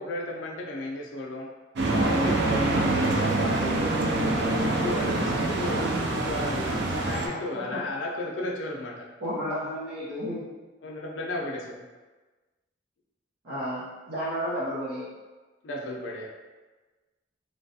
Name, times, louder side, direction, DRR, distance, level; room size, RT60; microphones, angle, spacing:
voice 1, 0.0-1.5 1.8-3.9 4.2-5.8 6.1-9.1 10.8-11.9 15.6-16.3, left 1 dB, 85° left, -1 dB, 0.4 m, -34 dB
sound 1, 1.8-7.3, right 2 dB, 65° right, 0.4 m, -25 dB
voice 2, 5.5-5.9 7.5-7.8 9.2-10.4 13.4-15.1, equal, 90° right, -12 dB, 0.8 m, -32 dB
3.0 x 2.2 x 2.7 m, 1.3 s
head